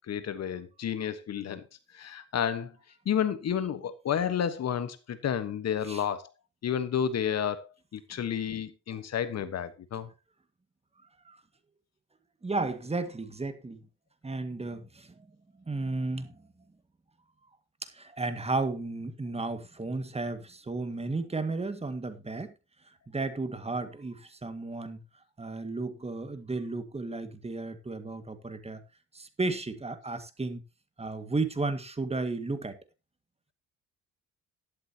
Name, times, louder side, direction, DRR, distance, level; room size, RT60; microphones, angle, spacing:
voice 1, 0.1-1.7 1.9-2.7 3.0-6.3 6.6-10.1, left 8 dB, 60° left, 1.3 m, -31 dB
voice 2, 12.4-13.8 14.2-15.3 15.7-16.4 17.8-22.5 23.1-25.0 25.4-28.8 29.1-30.6 31.0-32.8, right 3 dB, 20° right, 1.9 m, -33 dB
12.5 x 11.0 x 2.9 m
cardioid pair, 90°, 30 cm